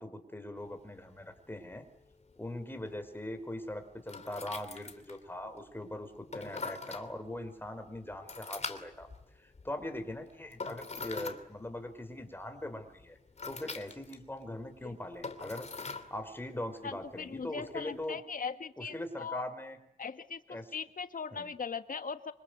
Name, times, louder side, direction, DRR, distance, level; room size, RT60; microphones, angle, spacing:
voice 1, 0.0-1.8 2.4-9.1 9.3-13.2 13.4-15.7 16.1-18.2 18.8-19.8 20.5-20.7 21.3-21.5, left 1 dB, 15° left, 7 dB, 5.1 m, -41 dB
sound 1, 0.6-18.1, left 4 dB, 45° left, 2.9 m, -46 dB
voice 2, 16.8-19.5 20.0-22.3, left 5 dB, 65° left, 10 dB, 1.5 m, -40 dB
27.0 x 26.0 x 8.1 m, 0.76 s
wide cardioid pair, 100°, 15 cm